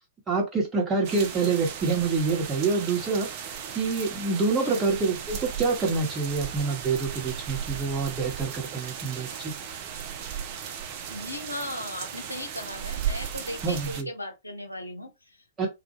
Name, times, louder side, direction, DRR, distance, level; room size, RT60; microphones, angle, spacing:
voice 1, 0.3-3.3 3.7-9.5 13.6-14.1 15.6-15.7, right 4 dB, 20° right, 1.0 m, -26 dB
sound 1, 1.0-14.0, right 8 dB, 40° right, 0.4 m, -36 dB
voice 2, 4.5-4.9 11.1-15.7, left 1 dB, 85° left, 0.7 m, -37 dB
2.2 x 2.2 x 2.9 m
figure-of-eight pair, 105°, 0 cm